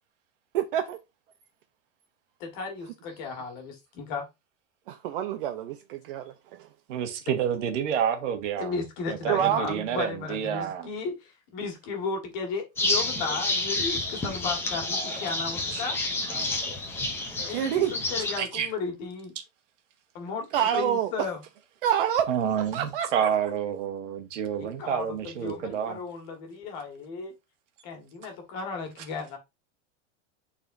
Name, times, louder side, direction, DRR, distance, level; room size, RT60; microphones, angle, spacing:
voice 1, 0.5-1.0 4.9-6.3 6.6-6.7 9.3-9.6 17.5-17.9 20.5-21.1 21.8-22.3 22.7-23.3, right 10 dB, 45° right, 0.6 m, -26 dB
voice 2, 2.4-4.3 8.6-16.0 17.4-19.3 20.1-20.5 20.7-21.4 24.6-27.3 27.8-29.4, left 4 dB, 35° left, 1.9 m, -35 dB
voice 3, 6.9-8.8 9.1-10.9 15.7-15.8 16.3-16.5 18.4-18.7 22.3-26.0, right 8 dB, 70° right, 1.7 m, -29 dB
sound 1, 12.8-18.4, left 2 dB, 5° left, 0.6 m, -29 dB
10.0 x 4.2 x 2.6 m
supercardioid pair, 175°, 38 cm